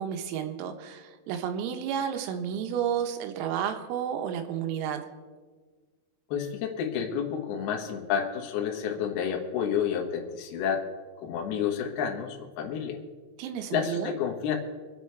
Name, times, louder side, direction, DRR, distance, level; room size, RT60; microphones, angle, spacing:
voice 1, 0.0-5.1 13.4-14.1, right 8 dB, 85° right, 6 dB, 3.8 m, -31 dB
voice 2, 6.3-10.9 11.2-13.0 13.7-14.5, left 8 dB, 65° left, 1 dB, 2.7 m, -30 dB
24.0 x 8.4 x 4.5 m, 1.4 s
omnidirectional pair, 6.0 m